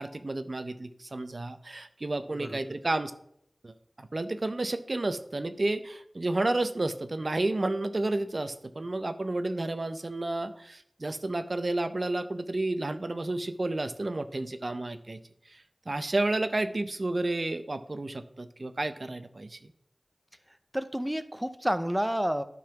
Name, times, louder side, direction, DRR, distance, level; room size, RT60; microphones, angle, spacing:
voice 1, 0.0-3.1 3.6-15.2 15.5-19.7, right 2 dB, 55° right, 10 dB, 0.6 m, -31 dB
voice 2, 20.7-22.4, equal, 10° right, 11 dB, 0.4 m, -29 dB
10.5 x 4.0 x 5.7 m, 0.72 s
wide cardioid pair, 60°, 0 cm